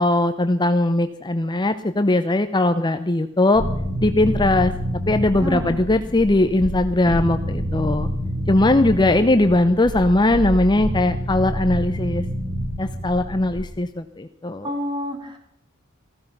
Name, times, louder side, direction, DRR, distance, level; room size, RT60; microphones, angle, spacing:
voice 1, 0.0-3.6 4.0-4.7 5.1-8.1 8.5-12.2 12.8-14.7, left 2 dB, 20° left, 9 dB, 0.7 m, -19 dB
sound 1, 3.5-13.6, equal, 50° right, 6.7 m, -27 dB
voice 2, 5.3-5.8 8.6-9.1 14.6-15.4, equal, 25° right, 3 dB, 3.6 m, -29 dB
15.5 x 15.0 x 5.4 m, 0.72 s
head